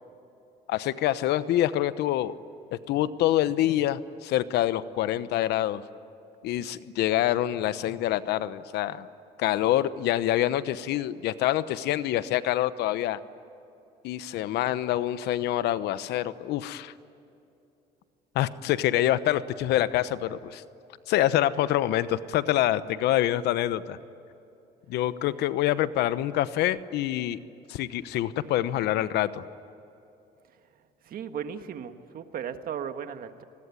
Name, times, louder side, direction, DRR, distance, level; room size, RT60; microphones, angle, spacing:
voice 1, 0.7-2.3 2.7-5.8 6.4-9.1 9.4-13.2 14.0-16.9 18.3-20.6 21.1-24.0 24.9-27.4 27.7-29.4, left 13 dB, 80° left, 14 dB, 1.0 m, -26 dB
voice 2, 31.0-33.4, right 8 dB, 60° right, 8 dB, 1.7 m, -36 dB
28.0 x 21.0 x 9.8 m, 2.8 s
cardioid pair, 110°, 17 cm